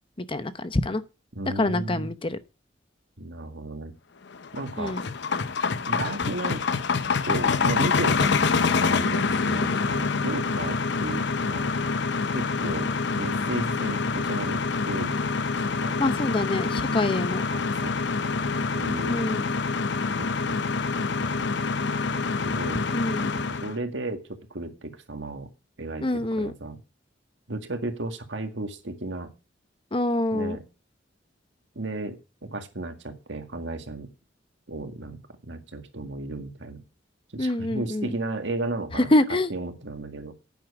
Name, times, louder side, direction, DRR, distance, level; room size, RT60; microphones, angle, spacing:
voice 1, 0.3-1.0 1.6-2.4 4.8-5.0 16.0-17.4 19.1-19.5 22.9-23.4 26.0-26.5 29.9-30.6 37.4-38.1 39.0-39.5, left 1 dB, 30° left, 0.8 m, -25 dB
voice 2, 1.4-2.1 3.2-3.9 4.5-5.0 5.9-6.6 7.3-11.7 12.3-15.4 15.6-16.2 17.5-18.0 18.2-19.2 20.2-20.6 21.1-22.9 23.3-25.5 25.8-26.8 27.5-29.3 30.3-30.6 31.8-34.1 34.7-36.8 37.3-39.1 39.5-40.3, right 2 dB, 70° right, 1.9 m, -35 dB
sound 1, 4.3-23.7, left 4 dB, 65° left, 0.7 m, -26 dB
10.5 x 9.3 x 4.9 m
head